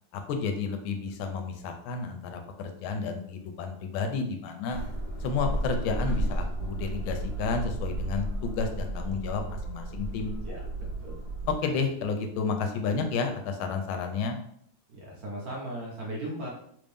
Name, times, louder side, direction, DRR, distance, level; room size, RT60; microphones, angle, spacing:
voice 1, 0.1-4.8 5.2-10.7 11.5-14.4, left 5 dB, 85° left, 5 dB, 1.4 m, -31 dB
sound 1, 4.7-11.5, right 1 dB, 40° left, 0.7 m, -33 dB
voice 2, 14.9-16.5, right 1 dB, 60° right, -3 dB, 1.1 m, -37 dB
3.4 x 2.6 x 3.4 m, 0.67 s
omnidirectional pair, 2.2 m